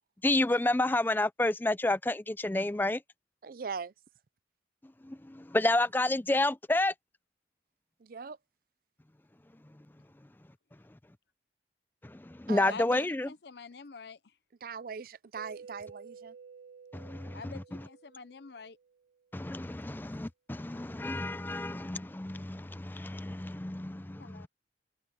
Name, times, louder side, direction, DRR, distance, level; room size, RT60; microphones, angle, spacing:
voice 1, 0.2-3.0 5.0-6.9 12.0-13.3 16.9-17.8 19.3-24.5, left 2 dB, 10° left, 0.4 m, -30 dB
voice 2, 3.4-3.9 8.0-8.4 12.5-13.0 14.6-16.3, right 5 dB, 50° right, 0.5 m, -40 dB
voice 3, 12.7-14.2 17.3-18.8 24.2-24.5, left 4 dB, 65° left, 0.7 m, -46 dB
Mallet percussion, 15.4-19.1, right 6 dB, 65° right, 1.5 m, -52 dB
head